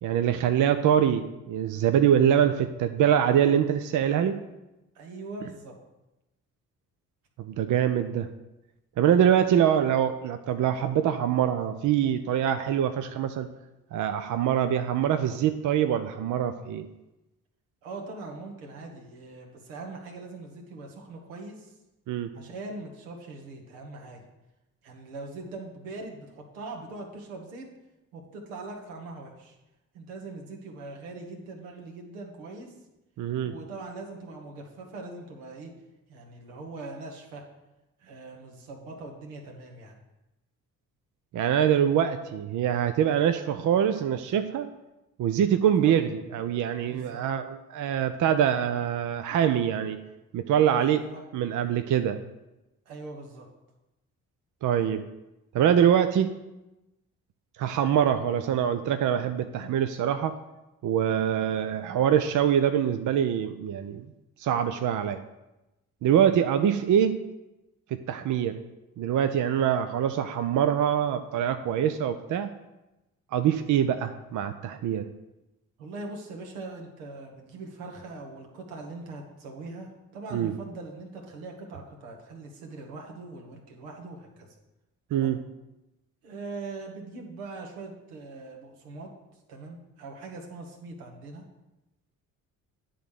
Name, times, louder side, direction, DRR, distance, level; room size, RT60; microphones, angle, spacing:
voice 1, 0.0-4.4 7.4-8.3 9.0-13.5 13.9-16.9 22.1-22.3 33.2-33.5 41.3-44.7 45.2-50.0 50.3-51.0 51.3-52.2 54.6-55.0 55.5-56.3 57.6-60.3 60.8-64.1 64.4-65.2 66.0-67.2 67.9-68.6 69.0-72.5 73.3-75.0 80.3-80.5 85.1-85.4, right 9 dB, 45° right, 9 dB, 0.6 m, -24 dB
voice 2, 4.9-5.7 17.8-21.7 22.3-24.2 24.8-27.7 28.1-29.6 29.9-32.7 33.4-35.7 36.1-37.4 38.0-40.0 45.8-45.9 46.9-47.2 50.8-51.2 52.9-53.5 66.1-66.3 75.8-84.5 85.1-85.4 86.2-89.1 89.5-91.4, right 3 dB, 75° right, 1 dB, 1.4 m, -41 dB
10.0 x 3.9 x 6.5 m, 0.98 s
figure-of-eight pair, 40°, 43 cm